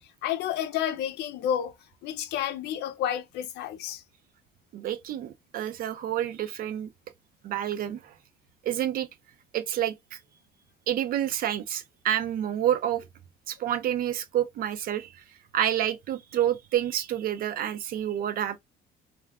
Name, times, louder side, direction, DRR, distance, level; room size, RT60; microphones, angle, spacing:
voice 1, 0.2-1.7 2.0-4.0, left 10 dB, 80° left, 0.5 m, -30 dB
voice 2, 4.7-6.9 7.4-8.1 8.6-9.1 9.5-10.2 10.9-13.0 13.5-15.2 15.5-18.6, right 11 dB, 60° right, 0.5 m, -28 dB
2.3 x 2.2 x 3.5 m
cardioid pair, 110°, 17 cm